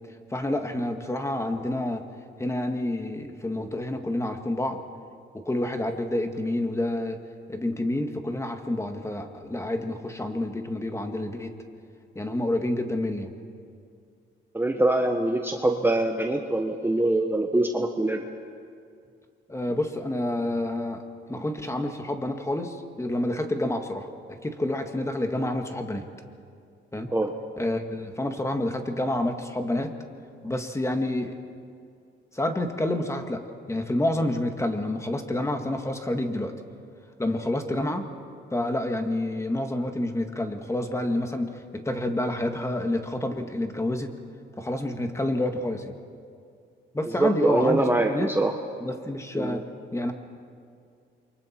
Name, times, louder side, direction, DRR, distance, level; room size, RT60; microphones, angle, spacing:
voice 1, 0.3-2.0 2.4-4.8 5.3-7.2 7.5-11.5 12.2-13.3 19.5-21.0 21.3-26.1 26.9-27.1 27.6-29.9 30.4-31.4 32.3-33.4 33.7-36.5 37.2-38.0 38.5-44.1 44.6-45.9 46.9-48.3 48.8-49.7 49.9-50.1, left 1 dB, 15° left, 5 dB, 1.9 m, -28 dB
voice 2, 14.5-18.2 27.1-27.3 37.6-37.8 47.1-48.5 49.3-49.6, right 2 dB, 10° right, 3 dB, 1.2 m, -24 dB
28.5 x 23.5 x 4.5 m, 2.3 s
cardioid pair, 90°, 20 cm